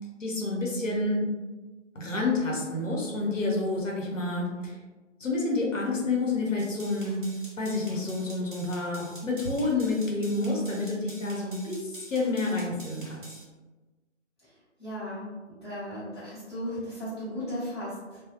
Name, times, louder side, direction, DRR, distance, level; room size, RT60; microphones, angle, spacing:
voice 1, 0.2-1.2 1.9-4.8 5.2-7.2 7.6-13.3, left 2 dB, 80° left, -2 dB, 0.9 m, -29 dB
sound 1, 6.6-13.4, right 1 dB, 40° right, 0.7 m, -48 dB
voice 2, 14.8-18.2, equal, 20° left, -14 dB, 1.1 m, -36 dB
2.3 x 2.0 x 2.9 m, 1.2 s
figure-of-eight pair, 155°, 38 cm